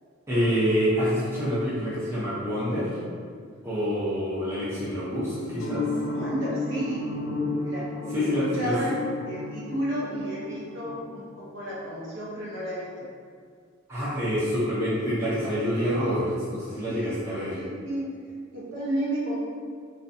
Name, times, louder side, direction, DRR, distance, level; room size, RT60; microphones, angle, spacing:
voice 1, 0.3-2.9 3.6-5.9 8.1-8.7 13.9-17.6, equal, 15° right, -11 dB, 0.6 m, -27 dB
sound 1, 5.6-11.8, left 3 dB, 80° left, 0.3 m, -32 dB
voice 2, 6.1-7.1 7.6-9.0 9.3-13.1 16.9-17.2 17.6-18.2 18.5-19.3, right 1 dB, 65° right, -7 dB, 0.7 m, -32 dB
2.6 x 2.2 x 2.5 m, 2.1 s
head